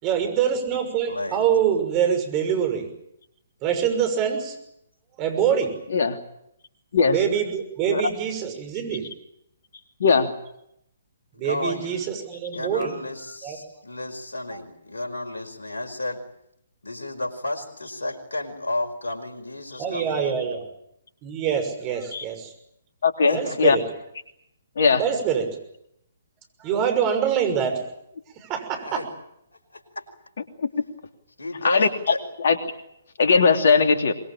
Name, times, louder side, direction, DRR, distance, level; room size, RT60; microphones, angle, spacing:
voice 1, 0.0-2.9 3.6-4.6 5.2-5.7 7.1-9.0 11.4-12.9 13.4-13.6 19.8-20.6 21.2-22.5 23.3-23.8 25.0-25.6 26.6-27.8 28.4-29.0, right 8 dB, 30° right, 7 dB, 6.1 m, -25 dB
voice 2, 1.1-1.5 11.3-12.0 12.5-16.2 16.8-20.6 23.3-23.6 28.8-29.1 29.5-30.1 31.4-32.2, left 2 dB, 80° left, 4 dB, 5.0 m, -32 dB
voice 3, 10.0-10.3 22.1-22.2 23.0-23.8 24.8-25.0 30.6-30.8 31.6-31.9 32.4-32.6 33.2-34.1, left 5 dB, 60° left, 6 dB, 3.0 m, -19 dB
24.5 x 22.0 x 8.9 m, 0.79 s
figure-of-eight pair, 130°, 0 cm